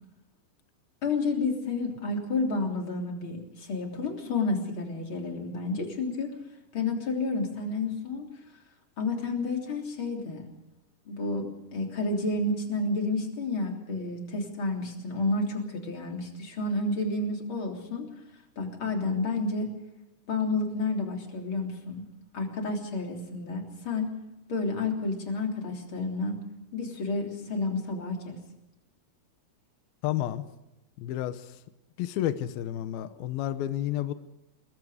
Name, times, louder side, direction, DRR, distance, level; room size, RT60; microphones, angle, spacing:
voice 1, 1.0-6.4 6.7-8.3 9.0-10.5 11.1-18.1 18.6-19.7 20.3-22.0 22.3-24.1 24.5-26.4 26.7-28.4, left 3 dB, 35° left, 2 dB, 3.8 m, -30 dB
voice 2, 30.0-30.4 31.0-31.6 32.0-34.1, left 13 dB, 75° left, 11 dB, 2.7 m, -31 dB
28.0 x 21.0 x 5.0 m, 0.90 s
omnidirectional pair, 4.5 m